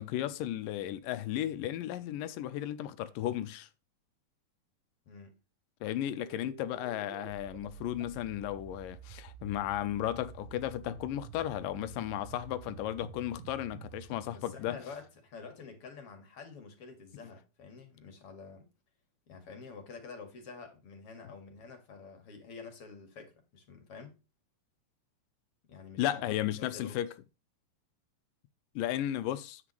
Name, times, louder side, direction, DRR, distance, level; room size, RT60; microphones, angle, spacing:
voice 1, 0.0-3.7 5.8-14.8 26.0-27.1 28.8-29.6, left 12 dB, 80° left, 2.3 m, -34 dB
sound 1, 6.1-15.4, right 11 dB, 80° right, 2.6 m, -50 dB
voice 2, 14.3-18.7 19.3-24.1 25.7-26.3 26.6-27.0, left 5 dB, 45° left, 2.5 m, -48 dB
9.8 x 8.4 x 3.2 m
omnidirectional pair, 4.1 m